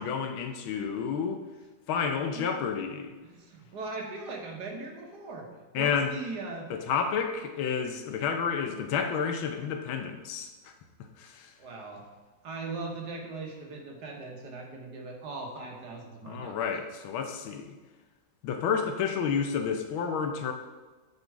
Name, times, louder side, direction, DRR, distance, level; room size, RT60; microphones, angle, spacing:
voice 1, 0.0-1.4 1.9-3.1 5.7-6.2 6.7-10.5 11.2-11.5 16.2-17.8 18.4-20.5, left 6 dB, 90° left, 5 dB, 1.6 m, -30 dB
voice 2, 3.2-5.5 5.7-6.7 11.6-12.0 12.4-16.6, right 3 dB, 60° right, 1 dB, 1.6 m, -39 dB
9.7 x 4.2 x 4.6 m, 1.3 s
omnidirectional pair, 2.2 m